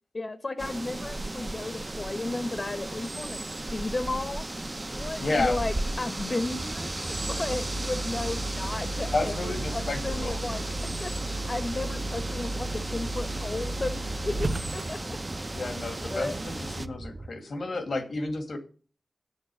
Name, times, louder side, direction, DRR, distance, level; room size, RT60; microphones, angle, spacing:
voice 1, 0.1-4.5 4.9-10.6 11.0-15.4 16.1-16.3, left 2 dB, 50° left, 9 dB, 1.1 m, -34 dB
sound 1, 0.6-16.9, right 2 dB, 30° right, 0.8 m, -35 dB
voice 2, 5.0-5.6 9.1-10.4 15.5-18.6, left 2 dB, 85° left, 6 dB, 2.2 m, -31 dB
sound 2, 6.4-17.3, right 2 dB, 55° right, 1.9 m, -41 dB
sound 3, 7.1-15.2, right 2 dB, 90° right, 0.8 m, -35 dB
9.8 x 6.8 x 7.6 m, 0.38 s
wide cardioid pair, 70°, 0 cm